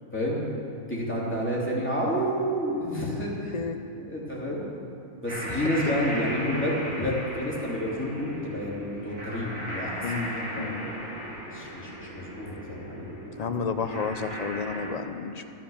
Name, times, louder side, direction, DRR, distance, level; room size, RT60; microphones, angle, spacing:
voice 1, 0.1-0.4 0.9-3.5 4.0-4.6 5.2-11.1 11.4-13.1, equal, 10° left, -6 dB, 3.1 m, -30 dB
sound 1, 5.3-14.9, equal, 75° right, 3.8 m, -37 dB
voice 2, 5.5-6.1 6.4-6.5 7.0-7.1 10.0-10.9 13.4-15.4, left 5 dB, 40° left, 7 dB, 0.6 m, -32 dB
12.5 x 12.5 x 7.2 m, 2.6 s
omnidirectional pair, 1.4 m